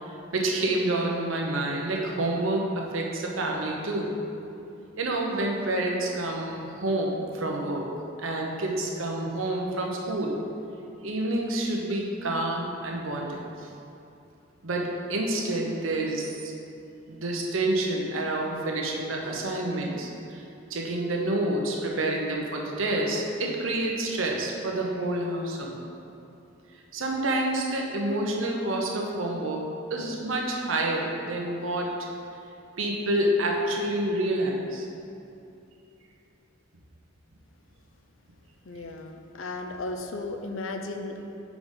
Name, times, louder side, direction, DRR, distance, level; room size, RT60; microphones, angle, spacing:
voice 1, 0.1-4.1 5.0-7.9 8.2-10.4 11.0-13.7 14.6-16.5 17.1-20.4 20.7-25.8 26.9-31.9 32.8-34.9, right 1 dB, 85° right, 0 dB, 0.9 m, -28 dB
voice 2, 38.6-41.4, left 2 dB, 80° left, 5 dB, 0.6 m, -35 dB
5.1 x 4.9 x 5.5 m, 2.8 s
head